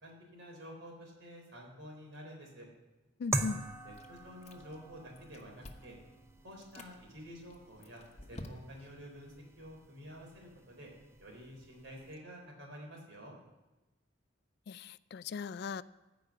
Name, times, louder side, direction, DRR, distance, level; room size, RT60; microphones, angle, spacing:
voice 1, 0.0-2.7 3.8-6.0 6.4-10.9 11.2-13.3, equal, 75° right, 0 dB, 3.9 m, -50 dB
voice 2, 3.2-3.6 14.7-15.8, left 5 dB, 60° left, 17 dB, 0.3 m, -38 dB
sound 1, 3.3-12.2, right 2 dB, 15° right, 0.7 m, -44 dB
Chewing mastication, 3.9-4.9 5.2-6.0 6.5-6.9 7.5-9.0, left 1 dB, 35° left, 1.1 m, -50 dB
14.5 x 5.2 x 8.5 m, 1.1 s
head